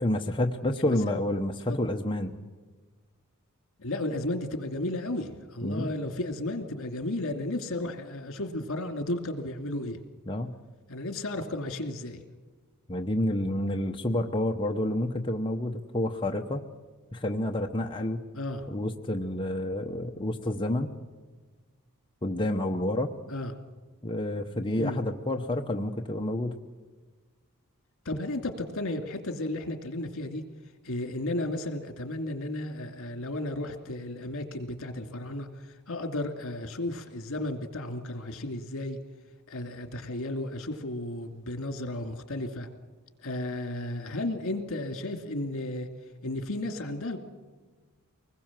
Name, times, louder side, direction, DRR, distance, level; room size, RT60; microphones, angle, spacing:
voice 1, 0.0-2.3 5.6-5.9 10.3-10.5 12.9-16.7 17.1-18.2 18.7-20.9 22.2-23.1 24.0-26.5, left 1 dB, 20° left, 2 dB, 0.9 m, -29 dB
voice 2, 3.8-10.0 10.9-12.2 18.3-18.7 23.3-23.5 24.8-25.0 28.0-30.4 30.8-35.5 35.9-39.0 39.5-42.7 43.2-45.9 46.2-47.2, left 1 dB, 65° left, 6 dB, 2.6 m, -33 dB
25.0 x 20.5 x 7.5 m, 1.4 s
head